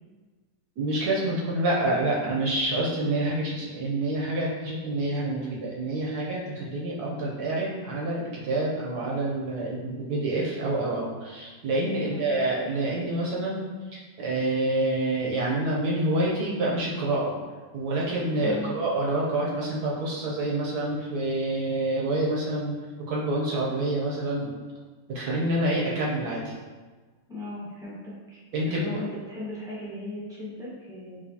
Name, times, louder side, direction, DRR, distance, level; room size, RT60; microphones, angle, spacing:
voice 1, 0.8-13.7 13.9-17.3 17.7-22.7 23.1-24.5 25.1-26.5 28.5-28.9, right 1 dB, 65° right, -4 dB, 1.0 m, -27 dB
voice 2, 12.0-12.3 18.4-18.8 27.3-28.4 28.7-31.2, left 2 dB, 5° right, -8 dB, 0.3 m, -37 dB
5.0 x 3.0 x 2.7 m, 1.3 s
omnidirectional pair, 2.1 m